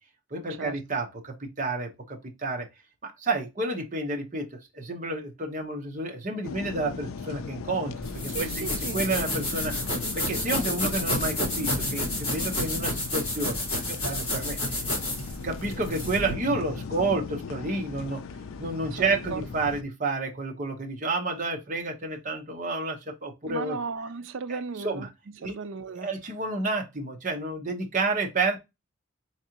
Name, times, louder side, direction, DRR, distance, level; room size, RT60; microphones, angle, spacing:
voice 1, 0.3-2.7 3.0-7.9 8.2-8.6 8.9-9.8 10.1-14.6 15.1-15.2 15.4-18.2 18.6-23.8 24.5-25.1 25.4-25.5 25.8-28.6, right 2 dB, 40° right, 0.9 m, -30 dB
sound 1, 6.4-19.8, left 5 dB, 75° left, 0.4 m, -38 dB
sound 2, 8.0-16.3, left 1 dB, 25° left, 2.2 m, -30 dB
voice 2, 8.3-9.0 19.0-19.4 23.5-25.1 25.4-26.1, right 5 dB, 65° right, 0.4 m, -35 dB
3.6 x 3.2 x 2.8 m
head